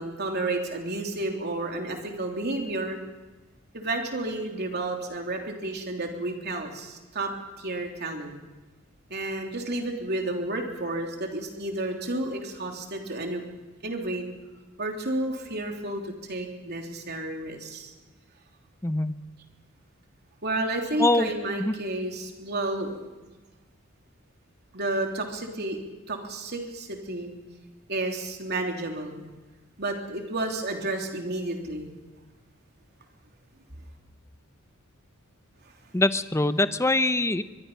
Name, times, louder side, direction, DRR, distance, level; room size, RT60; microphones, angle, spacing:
voice 1, 0.0-3.0 3.7-8.3 9.1-13.4 13.8-14.2 14.8-17.9 20.4-23.1 24.7-25.8 26.1-27.3 27.9-29.3 29.8-31.9, right 2 dB, 50° right, 2 dB, 3.3 m, -31 dB
voice 2, 18.8-19.2 21.0-21.3 21.6-21.7 35.9-37.4, left 2 dB, 15° left, 12 dB, 0.7 m, -23 dB
23.5 x 22.0 x 5.7 m, 1.2 s
head